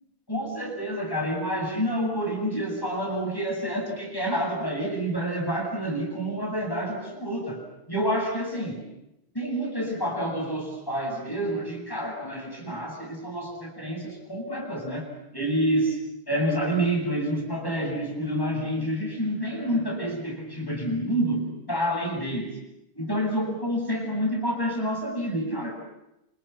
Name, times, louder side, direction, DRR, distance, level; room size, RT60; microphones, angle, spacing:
voice 1, 0.3-7.6 7.9-8.8 9.3-15.1 15.3-16.0 16.3-22.6 22.9-25.7, equal, 20° left, 0 dB, 8.0 m, -28 dB
29.0 x 28.5 x 6.0 m, 0.86 s
omnidirectional pair, 1.1 m